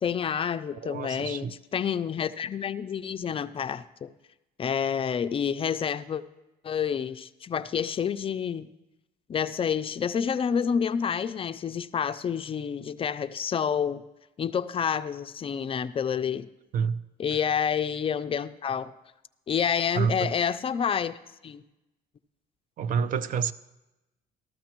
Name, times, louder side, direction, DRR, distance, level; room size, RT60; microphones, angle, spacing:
voice 1, 0.0-4.1 4.6-6.2 6.6-8.7 9.3-14.0 14.4-16.5 17.2-18.9 19.5-21.1 21.4-21.6, left 7 dB, 35° left, 11 dB, 0.4 m, -28 dB
voice 2, 0.8-1.5 16.7-17.0 17.3-17.4 19.9-20.3 22.8-23.5, right 6 dB, 55° right, 15 dB, 0.5 m, -28 dB
14.5 x 13.0 x 3.0 m, 0.98 s
cardioid pair, 110°, 17 cm